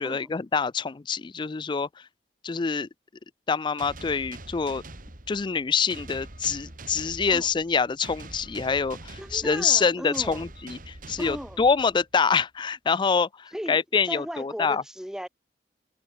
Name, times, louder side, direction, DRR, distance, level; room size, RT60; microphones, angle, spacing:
voice 1, 0.0-1.9 2.4-2.9 3.5-4.8 5.3-14.8, left 5 dB, 25° left, 0.4 m, -26 dB
sound 1, 3.8-12.2, right 2 dB, 50° right, 3.2 m, -44 dB
voice 2, 9.2-10.4 11.2-11.6 13.5-13.8 14.1-15.3, equal, 5° right, 1.3 m, -36 dB
head